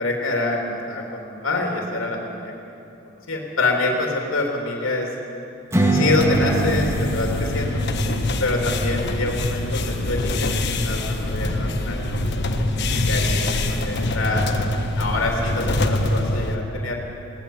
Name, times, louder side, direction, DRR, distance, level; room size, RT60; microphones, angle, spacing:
voice 1, 0.0-2.5 3.0-5.1 5.9-7.9 8.4-12.1 12.5-12.7 13.0-14.5 15.0-17.0, left 2 dB, 75° left, 0 dB, 3.3 m, -26 dB
Strum, 5.7-10.9, right 2 dB, 15° right, 1.7 m, -26 dB
sound 1, 6.2-16.6, left 2 dB, 55° left, 1.3 m, -24 dB
21.0 x 18.0 x 7.3 m, 2.7 s
head